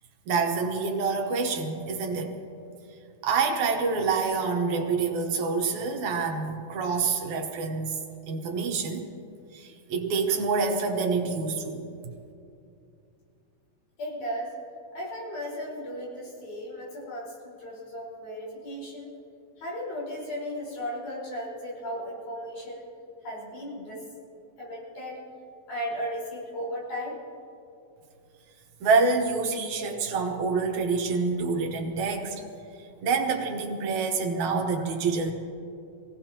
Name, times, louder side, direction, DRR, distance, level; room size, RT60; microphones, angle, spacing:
voice 1, 0.3-2.4 3.2-8.0 8.3-9.1 9.5-11.9 28.8-32.4 32.8-35.3, right 4 dB, 75° right, 3 dB, 2.6 m, -27 dB
voice 2, 14.0-14.5 14.9-19.1 19.6-22.8 23.2-24.1 24.6-25.2 25.7-27.2, equal, 85° left, -5 dB, 6.2 m, -35 dB
25.0 x 17.5 x 3.0 m, 2.6 s
omnidirectional pair, 3.4 m